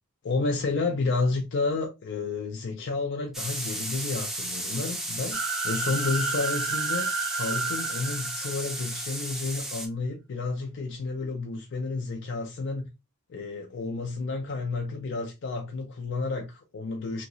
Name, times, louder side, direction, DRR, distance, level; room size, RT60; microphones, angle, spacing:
voice 1, 0.2-12.9 13.3-17.2, left 3 dB, 55° left, 0.4 m, -31 dB
sound 1, 3.3-9.9, right 1 dB, ahead, 0.5 m, -34 dB
sound 2, 5.3-9.0, right 4 dB, 60° right, 0.6 m, -31 dB
2.8 x 2.7 x 2.7 m
head